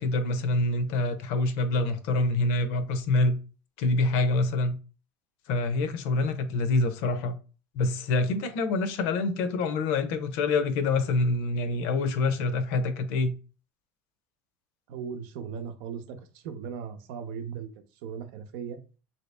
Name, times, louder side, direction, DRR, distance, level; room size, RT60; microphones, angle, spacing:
voice 1, 0.0-3.4 3.8-4.8 5.5-7.4 7.7-13.3, left 2 dB, 70° left, 0.7 m, -26 dB
voice 2, 14.9-17.7 18.0-18.8, right 7 dB, 70° right, 0.7 m, -37 dB
3.0 x 2.8 x 3.3 m
supercardioid pair, 140°, 7 cm